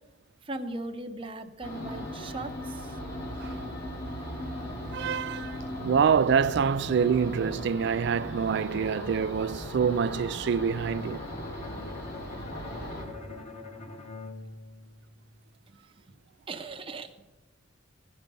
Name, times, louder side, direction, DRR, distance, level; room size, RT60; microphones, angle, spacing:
voice 1, 0.4-3.0 15.7-15.8 16.1-16.2 16.5-17.3, right 2 dB, 25° right, 0.8 m, -39 dB
sound 1, 1.6-13.0, equal, 55° left, 3.2 m, -38 dB
voice 2, 4.9-5.6 5.8-11.2, right 6 dB, 60° right, 0.3 m, -26 dB
Bowed string instrument, 10.6-15.5, left 3 dB, 35° left, 1.4 m, -44 dB
17.0 x 10.5 x 5.3 m
head